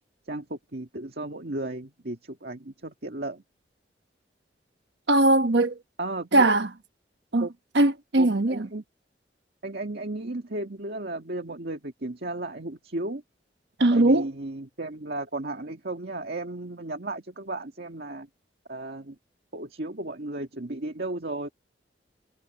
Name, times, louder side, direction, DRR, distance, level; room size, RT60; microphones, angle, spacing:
voice 1, 0.3-3.4 6.0-6.5 7.4-7.5 8.2-8.8 9.6-13.2 13.9-18.3 18.7-19.2 19.5-21.5, right 2 dB, 65° right, 2.0 m, -34 dB
voice 2, 5.1-5.8 6.3-6.7 7.3-7.5 7.7-8.7 13.8-14.3, right 2 dB, 80° right, 1.2 m, -20 dB
head